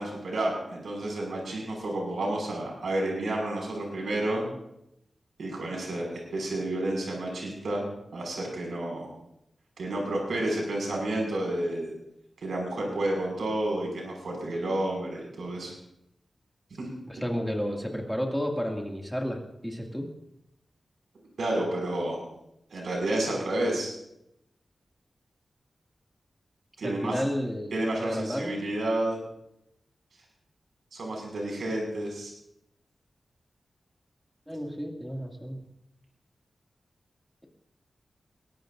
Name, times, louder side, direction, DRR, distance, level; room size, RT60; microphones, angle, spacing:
voice 1, 0.0-4.5 5.4-7.8 8.1-9.1 9.8-11.9 12.4-15.7 16.8-16.9 17.7-17.8 21.4-22.2 22.7-23.9 26.8-27.2 27.7-29.2 30.9-32.3, right 1 dB, 85° right, -1 dB, 6.1 m, -30 dB
voice 2, 17.1-20.1 26.8-28.6 34.5-35.6, equal, ahead, 0 dB, 2.4 m, -32 dB
22.0 x 18.0 x 2.7 m, 0.80 s
wide cardioid pair, 140°, 0 cm